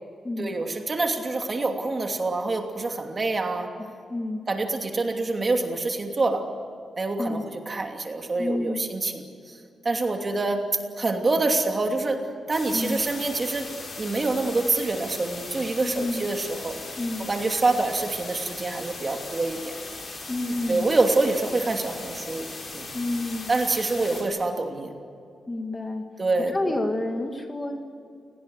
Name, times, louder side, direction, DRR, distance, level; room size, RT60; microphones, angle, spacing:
voice 1, 0.4-3.7 4.5-6.5 7.0-9.6 9.8-10.6 11.0-13.7 14.0-16.8 17.2-19.7 20.7-22.5 22.7-22.9 23.5-24.9 26.2-26.8, right 3 dB, 30° right, 3 dB, 2.8 m, -26 dB
voice 2, 4.1-4.4 7.2-7.5 8.4-8.8 12.7-13.0 15.8-16.2 17.0-17.3 20.3-20.9 22.9-23.5 25.5-26.0 26.5-27.8, left 2 dB, 20° left, 4 dB, 2.0 m, -29 dB
sound 1, 12.5-24.2, left 3 dB, 35° left, 6.4 m, -38 dB
29.5 x 19.5 x 8.1 m, 2.4 s
wide cardioid pair, 160°, 0 cm